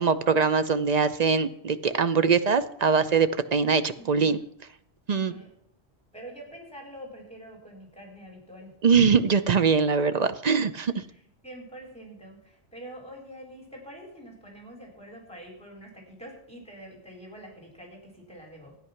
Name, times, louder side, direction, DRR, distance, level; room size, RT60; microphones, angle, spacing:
voice 1, 0.0-4.4 5.1-5.3 8.8-10.9, right 5 dB, 45° right, 11 dB, 0.6 m, -22 dB
voice 2, 4.0-4.4 5.1-5.5 6.1-8.7 11.1-18.8, right 1 dB, 5° left, 0 dB, 3.9 m, -45 dB
13.0 x 9.8 x 5.7 m, 0.71 s
omnidirectional pair, 1.2 m